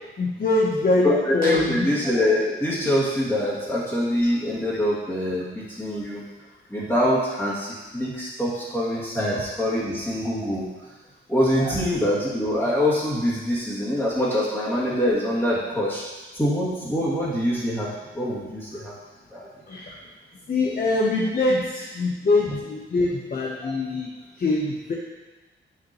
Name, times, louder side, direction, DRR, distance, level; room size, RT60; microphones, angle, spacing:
voice 1, 0.2-1.9 11.6-11.8 19.7-20.0 20.5-24.1 24.4-24.9, left 2 dB, 40° left, -2 dB, 0.9 m, -23 dB
voice 2, 1.0-6.2 6.7-10.6 11.3-16.0 16.3-18.9 19.3-19.5 23.6-23.7, left 1 dB, 10° left, -8 dB, 2.4 m, -24 dB
8.8 x 6.0 x 3.0 m, 1.2 s
wide cardioid pair, 115°, 21 cm